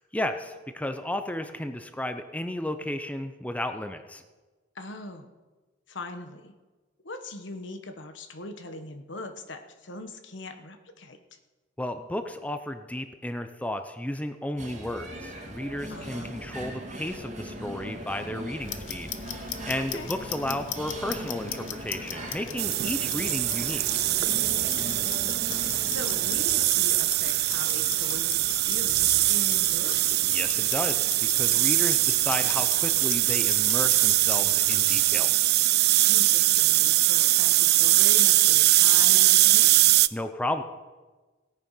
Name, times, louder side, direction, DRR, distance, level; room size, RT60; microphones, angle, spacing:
voice 1, 0.1-4.2 11.8-23.9 30.2-35.5 40.1-40.6, left 1 dB, 10° left, 8 dB, 0.7 m, -33 dB
voice 2, 4.7-5.3 5.9-6.5 7.0-11.2 15.9-16.3 19.9-20.1 24.6-25.3 25.8-30.3 36.0-39.9, left 2 dB, 70° left, 7 dB, 1.2 m, -40 dB
sound 1, 14.6-26.7, right 1 dB, 40° right, 2.1 m, -40 dB
Clock, 18.6-35.1, left 9 dB, 85° left, 0.9 m, -40 dB
sound 2, 22.6-40.1, right 17 dB, 55° right, 0.3 m, -22 dB
17.5 x 8.9 x 5.6 m, 1.3 s
head